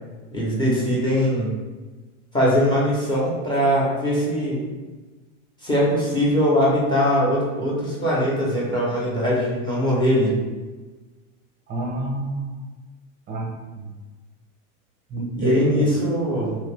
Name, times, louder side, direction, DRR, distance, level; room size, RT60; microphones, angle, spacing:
voice 1, 0.3-1.6 2.3-4.7 5.6-10.3 15.4-16.6, equal, 10° left, -6 dB, 1.0 m, -21 dB
voice 2, 11.7-12.6 13.3-13.9 15.1-15.8, right 2 dB, 25° right, -1 dB, 0.6 m, -28 dB
3.0 x 2.7 x 3.3 m, 1.3 s
supercardioid pair, 140°, 36 cm